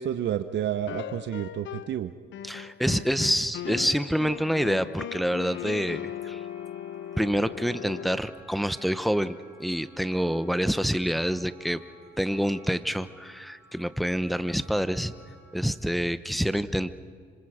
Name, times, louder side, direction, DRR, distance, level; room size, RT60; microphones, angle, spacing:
voice 1, 0.0-2.1, right 10 dB, 65° right, 10 dB, 0.8 m, -30 dB
sound 1, 0.9-2.0 2.3-8.2, left 11 dB, 70° left, 0.6 m, -38 dB
voice 2, 2.4-6.4 7.2-11.8 12.2-15.1 15.5-16.9, equal, ahead, 12 dB, 0.9 m, -27 dB
sound 2, 4.7-15.6, right 1 dB, 20° right, 5.3 m, -55 dB
26.5 x 25.5 x 5.0 m, 2.2 s
cardioid pair, 90°, 20 cm